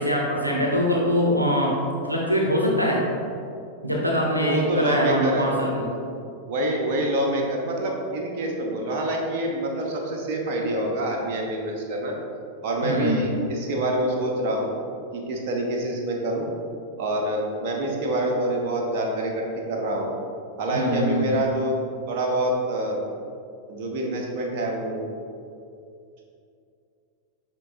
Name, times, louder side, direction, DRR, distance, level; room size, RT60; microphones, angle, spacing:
voice 1, 0.0-1.8 2.1-3.0 3.8-5.9 12.8-13.3 20.7-21.3, equal, 90° right, -2 dB, 0.8 m, -23 dB
voice 2, 4.4-5.5 5.9-6.0 6.5-12.1 12.6-14.7 15.1-16.5 17.0-20.1 20.6-21.8 22.1-23.0 23.7-25.0, right 1 dB, 45° right, 0 dB, 1.0 m, -26 dB
11.0 x 3.8 x 2.7 m, 2.5 s
figure-of-eight pair, 90°, 0 cm